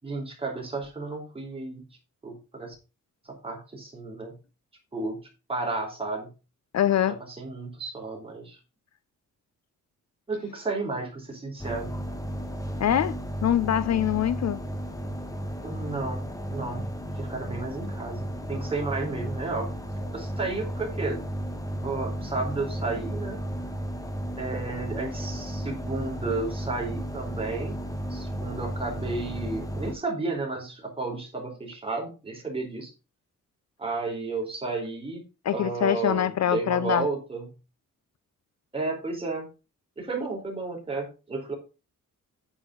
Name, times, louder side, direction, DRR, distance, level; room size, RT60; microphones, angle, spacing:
voice 1, 0.0-1.9 2.2-2.8 3.2-4.3 4.9-5.2 5.5-6.3 7.1-8.6 10.3-11.9 15.6-19.7 20.1-21.2 21.8-23.4 24.4-27.8 28.1-32.9 33.8-35.2 35.5-37.5 38.7-39.5 40.0-41.5, right 3 dB, 15° right, 4.3 m, -32 dB
voice 2, 6.7-7.2 12.8-13.2 13.4-14.6 35.5-37.1, left 10 dB, 55° left, 0.6 m, -24 dB
sound 1, 11.6-29.9, equal, 10° left, 1.3 m, -34 dB
8.9 x 8.8 x 3.9 m
wide cardioid pair, 165°, 32 cm